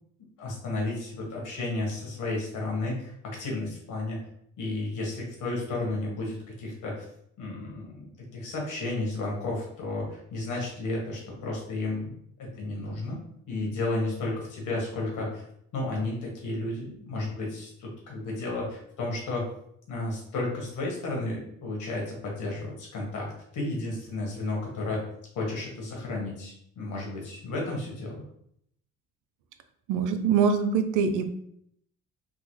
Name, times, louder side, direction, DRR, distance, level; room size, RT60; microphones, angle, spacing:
voice 1, 0.4-4.2 4.6-7.0 7.4-12.1 12.4-13.2 13.5-15.4 15.7-19.4 19.9-25.0 25.3-28.2, left 2 dB, 80° left, -2 dB, 1.4 m, -32 dB
voice 2, 29.9-31.3, right 6 dB, 85° right, 8 dB, 0.5 m, -24 dB
3.8 x 2.1 x 3.2 m, 0.71 s
cardioid pair, 90°, 30 cm